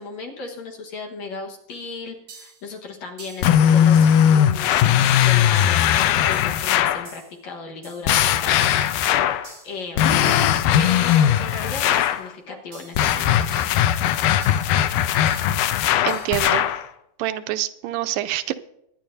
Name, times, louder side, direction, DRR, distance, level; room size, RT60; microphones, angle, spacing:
voice 1, 0.0-4.8 5.2-8.6 9.6-10.0 10.8-13.4, left 4 dB, 60° left, 1 dB, 2.4 m, -35 dB
sound 1, 1.7-1.8 2.3-2.6 3.2-3.5 4.0-4.3 4.7-5.1 5.6-5.9 6.3-6.6 7.1-7.4 7.8-8.1 8.6-8.9 9.4-9.8 10.3-10.6 11.1-11.4 11.9-12.3 12.7-13.1 13.5-13.9 14.4-14.8 15.3-15.6 16.1-16.4, right 5 dB, 55° right, 4.2 m, -45 dB
sound 2, 3.4-7.1 8.1-9.5 10.0-12.2 13.0-16.8, left 10 dB, 80° left, 2.1 m, -19 dB
voice 2, 16.0-16.7 17.2-18.5, right 14 dB, 85° right, 12 dB, 2.2 m, -26 dB
23.0 x 10.0 x 2.7 m, 0.79 s
omnidirectional pair, 3.9 m